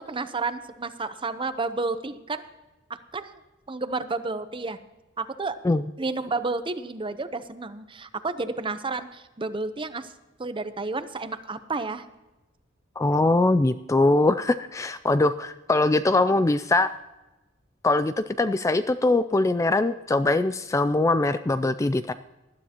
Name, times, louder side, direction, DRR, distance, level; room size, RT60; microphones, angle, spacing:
voice 1, 0.0-2.4 2.9-3.4 3.7-4.8 5.2-5.6 6.0-10.1 10.4-12.1, right 3 dB, 25° right, 11 dB, 0.7 m, -31 dB
voice 2, 13.0-16.9 17.8-22.1, left 2 dB, 15° left, 12 dB, 0.3 m, -22 dB
19.5 x 12.5 x 2.9 m, 1.1 s
head